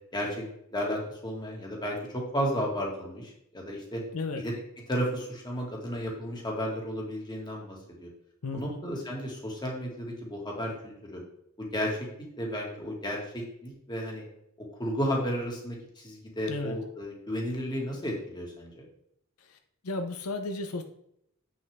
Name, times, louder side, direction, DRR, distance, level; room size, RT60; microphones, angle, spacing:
voice 1, 0.1-0.4 0.7-4.0 4.4-4.5 4.9-8.1 8.5-11.2 11.6-12.0 12.4-14.2 14.8-18.9, equal, 20° left, -2 dB, 1.9 m, -33 dB
voice 2, 4.1-4.4 8.4-8.8 16.5-16.8 19.5-19.6 19.8-20.8, left 3 dB, 80° left, 6 dB, 0.7 m, -33 dB
7.9 x 6.4 x 3.5 m, 0.75 s
head